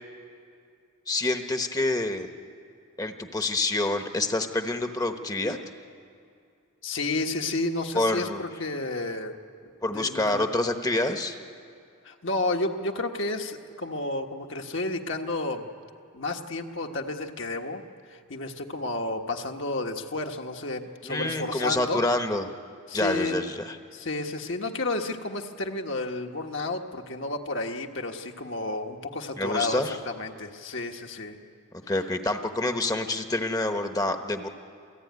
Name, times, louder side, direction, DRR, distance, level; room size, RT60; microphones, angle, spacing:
voice 1, 1.1-2.3 3.0-5.6 7.9-8.4 9.8-11.4 21.0-22.5 22.9-23.8 29.4-30.0 31.9-34.5, left 2 dB, 15° left, 6 dB, 1.1 m, -27 dB
voice 2, 6.8-9.4 9.9-10.5 12.0-15.7 16.1-17.8 18.1-22.0 22.9-23.4 23.9-31.4, left 2 dB, 55° left, 3 dB, 1.5 m, -31 dB
28.0 x 15.5 x 9.6 m, 2.4 s
head